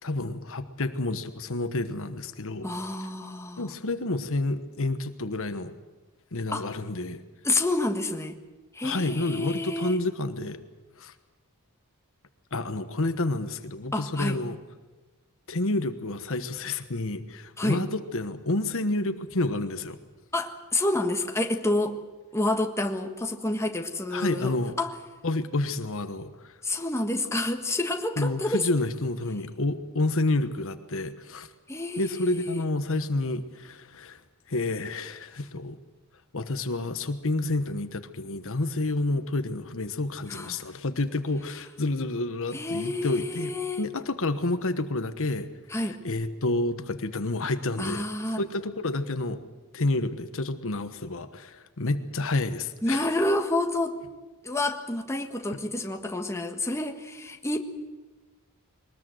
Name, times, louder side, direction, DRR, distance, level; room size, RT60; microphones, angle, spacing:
voice 1, 0.0-2.7 3.6-5.7 6.3-7.2 8.8-10.6 11.0-11.1 12.5-14.6 15.5-20.0 24.1-24.8 25.2-26.6 28.2-31.5 32.0-34.2 34.5-35.8 36.3-45.8 46.0-48.0 48.4-49.4 49.7-53.1, left 2 dB, 65° left, 10 dB, 1.3 m, -29 dB
voice 2, 2.6-3.7 6.5-6.7 7.4-8.4 8.7-10.0 13.9-14.4 17.6-17.8 20.3-22.0 22.3-24.9 26.6-28.7 31.7-32.6 40.3-40.6 42.5-43.9 45.7-46.0 47.8-48.4 52.8-54.0 54.4-57.6, left 2 dB, 15° left, 4 dB, 1.5 m, -29 dB
22.0 x 20.0 x 7.9 m, 1.2 s
head